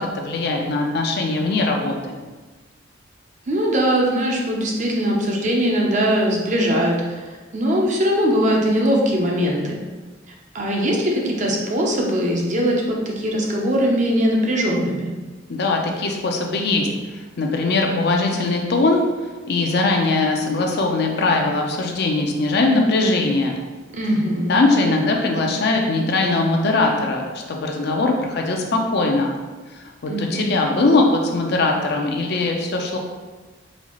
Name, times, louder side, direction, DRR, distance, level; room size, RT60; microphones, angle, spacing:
voice 1, 0.0-2.2 15.5-16.9 17.4-19.0 19.5-23.5 24.5-29.3 30.0-33.0, left 2 dB, 55° left, 2 dB, 0.5 m, -20 dB
voice 2, 3.5-7.2 7.5-9.8 10.5-15.1 23.9-24.6 30.1-30.5, equal, 40° right, -1 dB, 0.6 m, -21 dB
4.1 x 2.4 x 3.0 m, 1.3 s
head